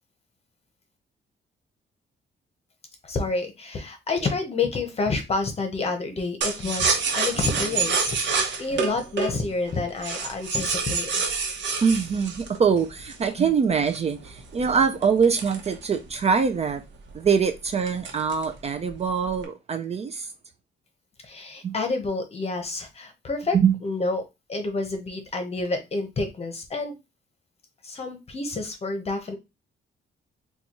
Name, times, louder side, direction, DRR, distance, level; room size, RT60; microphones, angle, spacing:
voice 1, 3.0-11.2 21.2-23.6 23.8-24.2 24.5-27.0 27.8-29.4, left 3 dB, 35° left, 0.9 m, -29 dB
sound 1, 6.4-13.3 13.9-16.3 16.7-16.8 17.1-17.4 17.9-18.6 18.9-19.4, right 5 dB, 70° right, 0.9 m, -27 dB
voice 2, 11.8-16.8 17.1-20.3 21.6-21.7 23.5-23.8, right 6 dB, 35° right, 0.4 m, -23 dB
4.0 x 2.3 x 2.9 m
cardioid pair, 125°, 19 cm